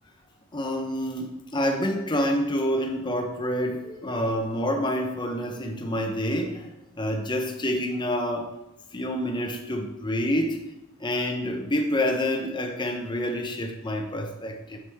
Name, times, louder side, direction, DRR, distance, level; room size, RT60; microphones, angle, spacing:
voice 1, 0.5-6.7 7.0-8.5 8.9-10.6 11.0-14.8, equal, 20° left, 3 dB, 0.8 m, -27 dB
7.6 x 7.1 x 3.5 m, 0.92 s
head